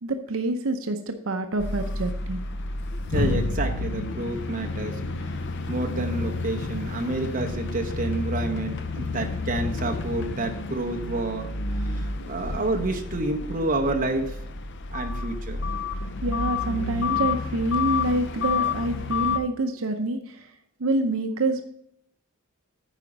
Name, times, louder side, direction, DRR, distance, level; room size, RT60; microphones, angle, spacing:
voice 1, 0.0-2.4 16.2-20.5 20.8-21.6, right 2 dB, 70° right, 6 dB, 0.6 m, -27 dB
sound 1, 1.6-19.4, left 4 dB, 55° left, 0.6 m, -30 dB
voice 2, 3.1-5.0 5.7-14.4 14.9-15.6, right 2 dB, 40° right, 3 dB, 0.9 m, -29 dB
9.0 x 5.0 x 5.2 m, 0.72 s
head